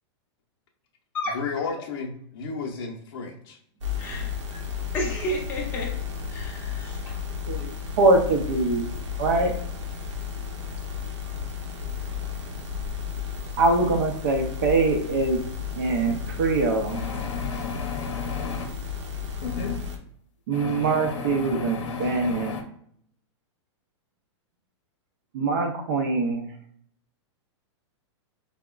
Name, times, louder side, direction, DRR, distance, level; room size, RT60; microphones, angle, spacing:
voice 1, 1.3-3.6, left 5 dB, 50° left, -1 dB, 0.6 m, -32 dB
sound 1, 3.8-20.0, left 7 dB, 75° right, 0.8 m, -33 dB
voice 2, 4.0-4.6 4.9-6.0 6.3-7.2, equal, 15° left, -2 dB, 0.6 m, -32 dB
voice 3, 8.0-8.9 9.2-9.5 13.6-15.4 15.7-17.0 20.5-22.5 25.3-26.4, right 3 dB, 40° right, 3 dB, 0.5 m, -23 dB
sound 2, 16.0-16.2 16.9-18.7 19.4-19.8 20.5-22.6, left 4 dB, 90° left, 0.6 m, -33 dB
4.7 x 2.1 x 2.2 m, 0.67 s
supercardioid pair, 170°, 15 cm